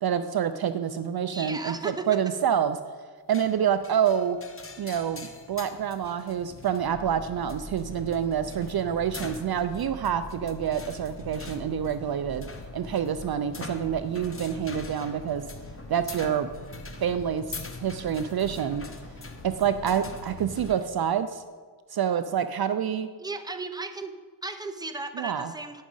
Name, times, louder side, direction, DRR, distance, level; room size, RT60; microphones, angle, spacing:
voice 1, 0.0-2.8 3.3-4.4 4.8-12.5 12.7-15.5 15.9-16.5 17.0-18.9 19.4-21.4 21.9-23.1 25.2-25.5, right 8 dB, 55° right, 11 dB, 0.5 m, -27 dB
voice 2, 1.3-2.1 23.2-24.1 24.4-25.8, right 3 dB, 10° right, 7 dB, 0.8 m, -35 dB
sound 1, 3.3-20.9, left 3 dB, 30° left, 1.0 m, -45 dB
sound 2, 6.8-20.7, left 1 dB, 65° left, 2.4 m, -43 dB
9.9 x 6.3 x 5.4 m, 1.5 s
cardioid pair, 60°, 44 cm